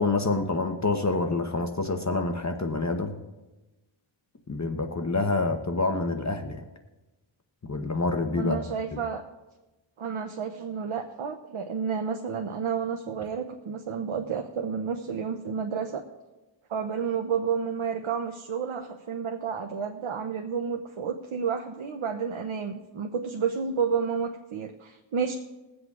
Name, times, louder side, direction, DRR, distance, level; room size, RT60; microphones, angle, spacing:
voice 1, 0.0-3.1 4.5-6.6 7.7-8.6, left 3 dB, 35° left, 5 dB, 0.8 m, -27 dB
voice 2, 8.4-9.2 10.0-16.0 16.7-25.4, right 6 dB, 85° right, 5 dB, 0.7 m, -31 dB
21.5 x 7.8 x 2.4 m, 1.1 s
wide cardioid pair, 65°, 47 cm